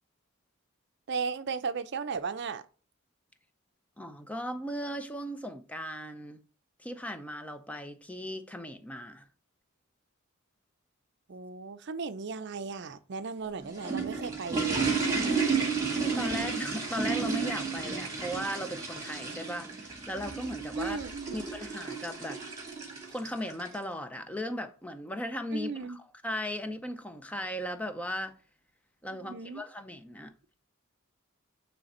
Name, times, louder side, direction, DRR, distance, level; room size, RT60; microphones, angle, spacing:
voice 1, 1.1-2.6 11.3-14.9 20.7-21.4 25.5-26.0 29.1-29.6, right 5 dB, 55° right, 0.5 m, -36 dB
voice 2, 4.0-6.4 6.8-9.3 15.9-21.0 21.3-22.4 23.1-28.4 29.0-30.3, equal, 5° left, 0.6 m, -37 dB
sound 1, 13.4-23.7, right 4 dB, 15° right, 2.2 m, -32 dB
9.0 x 3.3 x 4.3 m
head